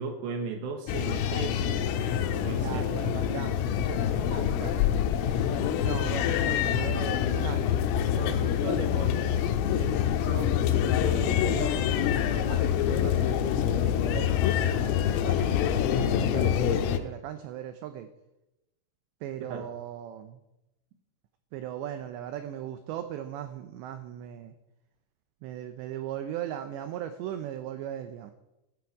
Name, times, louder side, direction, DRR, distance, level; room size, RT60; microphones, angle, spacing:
voice 1, 0.0-1.8 2.4-2.9 19.5-19.7, right 4 dB, 70° right, 5 dB, 3.2 m, -35 dB
sound 1, 0.9-17.0, left 9 dB, 85° left, 3.5 m, -26 dB
voice 2, 2.6-4.8 5.8-9.4 9.8-15.6 16.0-18.1 19.2-20.4 21.5-24.6 25.4-28.3, right 10 dB, 90° right, 9 dB, 2.5 m, -39 dB
13.5 x 13.0 x 4.8 m, 0.93 s
omnidirectional pair, 6.0 m